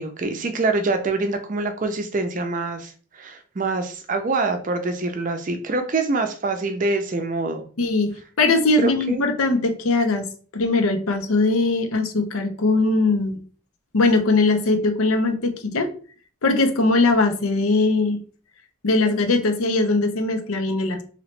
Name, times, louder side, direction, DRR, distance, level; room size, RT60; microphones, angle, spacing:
voice 1, 0.0-7.6 8.8-9.2, right 3 dB, 40° right, 6 dB, 0.4 m, -25 dB
voice 2, 7.8-13.4 13.9-15.9 16.4-18.2 18.8-21.0, left 3 dB, 85° left, 6 dB, 0.6 m, -20 dB
3.0 x 2.8 x 3.1 m, 0.41 s
head